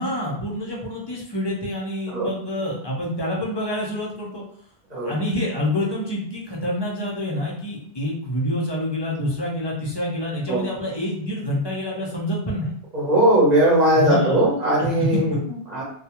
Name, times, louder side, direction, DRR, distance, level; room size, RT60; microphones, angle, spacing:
voice 1, 0.0-4.4 5.0-12.7 14.0-14.4 14.8-15.1 15.5-15.6, left 1 dB, 35° left, -3 dB, 0.4 m, -27 dB
voice 2, 12.9-15.4 15.7-15.8, right 1 dB, 40° right, -5 dB, 0.8 m, -19 dB
2.2 x 2.2 x 2.8 m, 0.64 s
omnidirectional pair, 1.2 m